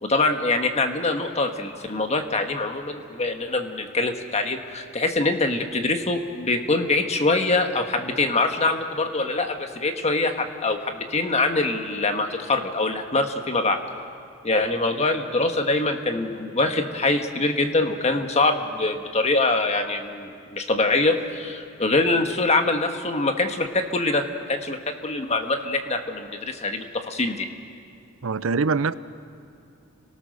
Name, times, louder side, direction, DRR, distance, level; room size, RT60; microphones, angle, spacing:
voice 1, 0.0-13.8 14.4-27.5, left 2 dB, 35° left, 5 dB, 1.5 m, -24 dB
voice 2, 28.2-28.9, right 4 dB, 85° right, 15 dB, 0.6 m, -23 dB
30.0 x 18.5 x 6.5 m, 2.4 s
head